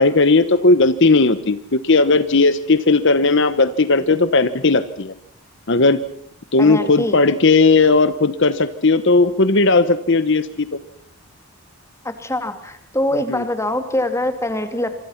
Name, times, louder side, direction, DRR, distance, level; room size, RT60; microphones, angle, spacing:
voice 1, 0.0-5.1 5.7-6.0 6.5-10.8 13.3-13.4, left 3 dB, 55° left, 13 dB, 1.0 m, -16 dB
voice 2, 6.6-7.2 12.0-14.9, left 1 dB, 10° left, 8 dB, 2.5 m, -23 dB
26.5 x 25.5 x 5.8 m, 0.66 s
head